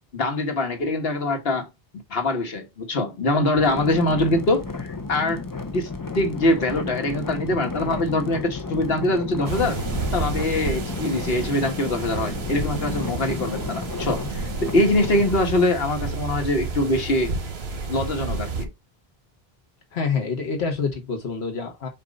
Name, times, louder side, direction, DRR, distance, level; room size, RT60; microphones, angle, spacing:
voice 1, 0.1-1.7 2.1-5.4 5.7-9.8 10.1-17.3 17.9-18.7, left 1 dB, 70° left, 1.6 m, -23 dB
sound 1, 3.6-15.4, left 4 dB, 25° left, 0.6 m, -32 dB
sound 2, 9.4-18.6, right 4 dB, 85° right, 1.5 m, -31 dB
voice 2, 19.9-21.9, left 5 dB, 90° left, 1.4 m, -27 dB
7.3 x 2.6 x 5.2 m
omnidirectional pair, 1.0 m